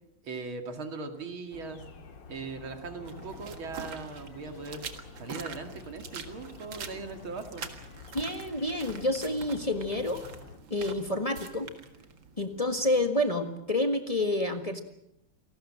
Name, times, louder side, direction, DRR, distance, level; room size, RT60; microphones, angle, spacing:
voice 1, 0.2-1.8 2.3-4.8 5.2-7.7, right 4 dB, 85° right, 6 dB, 3.1 m, -39 dB
sound 1, 1.5-10.6, left 4 dB, 65° left, 2.5 m, -49 dB
sound 2, 3.0-13.0, right 5 dB, 70° right, 2.5 m, -45 dB
voice 2, 8.1-10.2 10.7-11.7 12.4-14.8, left 1 dB, 20° left, 6 dB, 1.6 m, -29 dB
28.0 x 19.0 x 7.5 m, 0.81 s
omnidirectional pair, 2.2 m